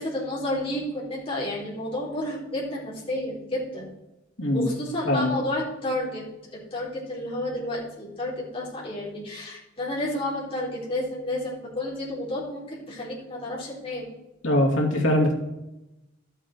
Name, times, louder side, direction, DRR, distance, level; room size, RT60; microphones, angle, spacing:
voice 1, 0.0-3.9 4.5-6.2 6.7-14.1, left 1 dB, 30° left, -5 dB, 4.2 m, -31 dB
voice 2, 4.4-4.7 5.1-5.3 14.4-15.3, left 1 dB, 70° left, 0 dB, 2.7 m, -22 dB
12.5 x 8.4 x 4.5 m, 0.94 s
head